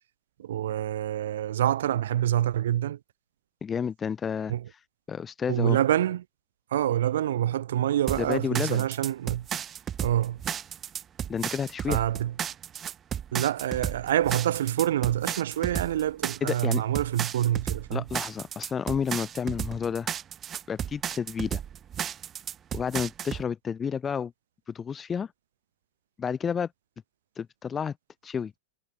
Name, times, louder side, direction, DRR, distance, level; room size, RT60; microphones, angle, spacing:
voice 1, 0.4-3.0 4.5-4.6 5.5-6.2 6.7-9.5 10.0-10.4 11.9-12.3 13.3-18.0, right 12 dB, 80° right, 7.1 m, -26 dB
voice 2, 3.6-4.5 5.1-5.8 8.2-8.8 11.3-12.0 16.4-16.8 17.9-20.1 20.7-21.6 22.7-24.3 24.7-25.3 26.2-26.7 27.4-28.0 28.2-28.5, left 7 dB, 15° left, 1.8 m, -30 dB
sound 1, 8.1-23.4, right 9 dB, 20° right, 1.7 m, -34 dB
supercardioid pair, 145°, 0 cm